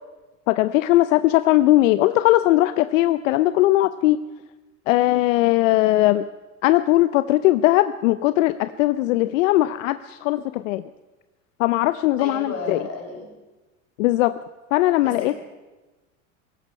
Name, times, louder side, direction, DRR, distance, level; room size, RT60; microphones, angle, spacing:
voice 1, 0.5-4.2 4.9-6.3 6.6-10.8 11.6-12.8 14.0-14.3 14.7-15.3, left 16 dB, 80° left, 13 dB, 0.6 m, -19 dB
voice 2, 12.2-13.2 15.0-15.4, left 3 dB, 40° left, 1 dB, 5.9 m, -33 dB
17.5 x 15.5 x 5.4 m, 1.2 s
supercardioid pair, 105°, 38 cm